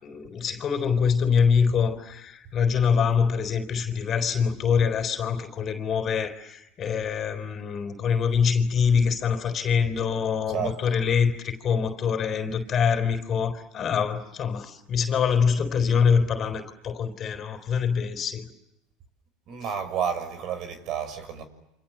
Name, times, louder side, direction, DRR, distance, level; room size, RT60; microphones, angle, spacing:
voice 1, 0.0-18.5, left 6 dB, 40° left, 4.1 m, -24 dB
voice 2, 19.5-21.4, right 8 dB, 50° right, 6.4 m, -30 dB
29.5 x 27.0 x 7.4 m
supercardioid pair, 105°, 0 cm